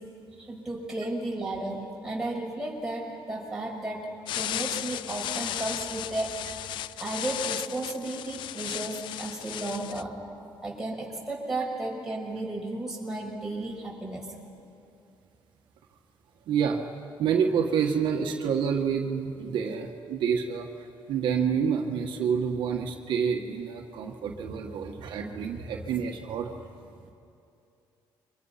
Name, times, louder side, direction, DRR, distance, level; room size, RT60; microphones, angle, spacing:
voice 1, 0.4-4.1 4.3-6.7 7.0-10.1 10.6-14.3, right 2 dB, 5° right, -3 dB, 6.4 m, -34 dB
sound 1, 4.3-10.0, left 13 dB, 80° left, 0.5 m, -35 dB
voice 2, 16.5-16.8 17.2-20.7 21.1-26.5, right 7 dB, 75° right, 2 dB, 1.6 m, -28 dB
29.5 x 24.5 x 5.8 m, 2.6 s
cardioid pair, 120°, 8 cm